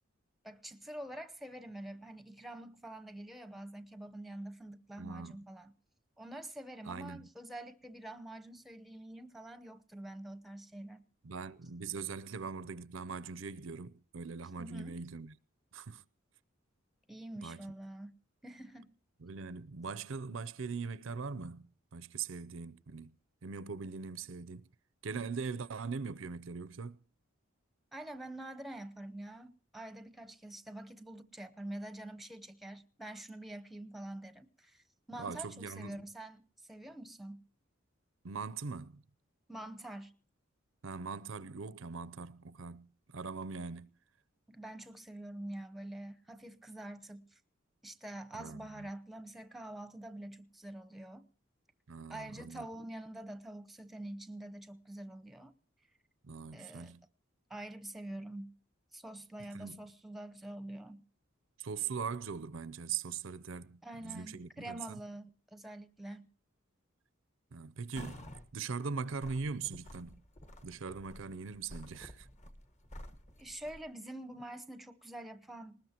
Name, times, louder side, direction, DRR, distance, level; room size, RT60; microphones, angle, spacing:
voice 1, 0.4-5.7 6.2-11.1 14.6-15.0 17.1-18.1 18.4-18.9 27.9-37.4 39.5-40.1 44.5-47.4 47.8-51.3 52.1-55.5 56.5-56.9 57.5-58.5 58.9-61.0 63.8-66.3 73.4-75.8, right 1 dB, ahead, 0.8 m, -46 dB
voice 2, 5.0-5.4 6.9-7.3 11.2-15.4 15.7-16.0 17.4-17.7 19.2-23.1 23.4-24.7 25.0-27.0 35.2-36.0 38.2-39.0 40.8-43.9 48.3-48.9 51.9-52.6 56.2-57.0 59.5-59.8 61.6-65.0 67.5-70.2 70.6-72.3, right 5 dB, 70° right, 0.6 m, -41 dB
sound 1, 67.9-68.5 68.9-73.8, equal, 35° left, 1.4 m, -51 dB
20.0 x 19.5 x 2.9 m
head